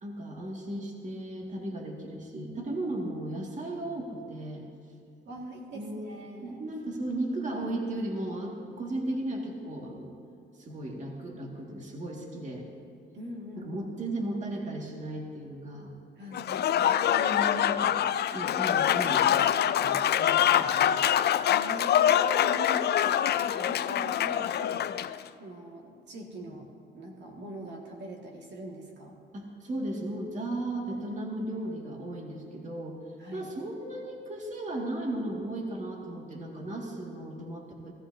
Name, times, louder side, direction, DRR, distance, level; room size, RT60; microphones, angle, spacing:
voice 1, 0.0-4.6 5.7-6.1 6.4-10.1 10.6-12.7 13.6-15.9 16.8-21.1 26.3-26.6 29.3-33.0 33.3-37.9, right 1 dB, 40° right, -1 dB, 2.0 m, -36 dB
voice 2, 5.3-6.6 13.1-13.8 16.2-17.0 21.5-23.0 23.3-24.9 25.4-26.7 26.9-29.2 33.2-33.5, right 1 dB, 65° right, -2 dB, 2.1 m, -43 dB
Applause / Crowd, 16.3-25.2, left 10 dB, 55° left, 0.4 m, -25 dB
17.5 x 15.0 x 2.8 m, 2.3 s
cardioid pair, 90°, 20 cm